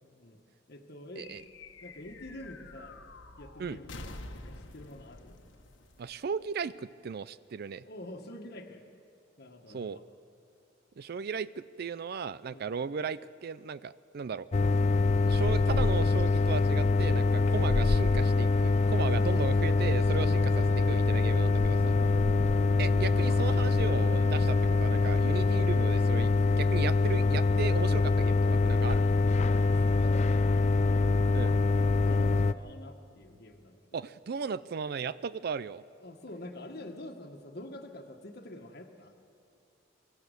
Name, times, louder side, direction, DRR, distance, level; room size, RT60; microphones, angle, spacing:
voice 1, 0.0-0.4 0.7-1.3 1.8-3.0 3.4-5.4 7.8-8.9 9.4-10.0 12.5-12.8 19.2-19.5 21.9-22.7 29.3-31.0 31.8-34.0 36.0-39.1, left 1 dB, 55° left, 2 dB, 1.5 m, -46 dB
sound 1, 1.2-6.9, left 2 dB, 80° left, 1.4 m, -48 dB
voice 2, 6.0-7.8 9.7-10.0 11.0-14.5 15.3-21.9 22.8-29.1 31.3-31.6 33.9-35.8, right 6 dB, 55° right, 16 dB, 0.4 m, -36 dB
sound 2, 14.5-32.5, left 3 dB, 35° left, 0.4 m, -24 dB
25.0 x 14.0 x 8.2 m, 2.7 s
head